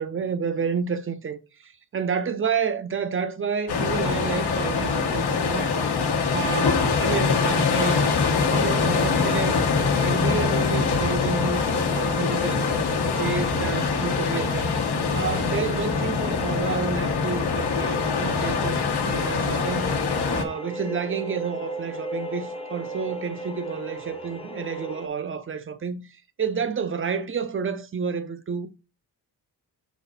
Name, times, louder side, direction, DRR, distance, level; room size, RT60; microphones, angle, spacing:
voice 1, 0.0-5.7 6.3-9.6 10.0-12.7 13.0-14.7 15.1-19.9 20.3-26.0 26.4-28.7, right 6 dB, 35° right, 0.5 m, -30 dB
sound 1, 3.7-20.4, left 5 dB, 75° left, 1.2 m, -24 dB
sound 2, 8.2-25.1, right 1 dB, 15° left, 0.6 m, -37 dB
6.1 x 4.1 x 4.0 m
wide cardioid pair, 170°, 39 cm